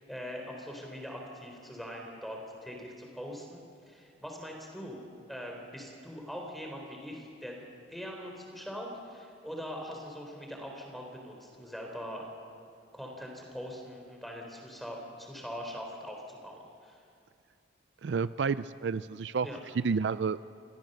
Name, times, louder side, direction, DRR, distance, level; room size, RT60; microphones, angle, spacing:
voice 1, 0.0-7.6 7.9-12.3 12.9-17.0 19.4-19.6, equal, ahead, 1 dB, 3.7 m, -42 dB
voice 2, 18.0-19.5 19.7-20.4, right 5 dB, 65° right, 15 dB, 0.4 m, -30 dB
26.0 x 17.0 x 6.7 m, 2.5 s
head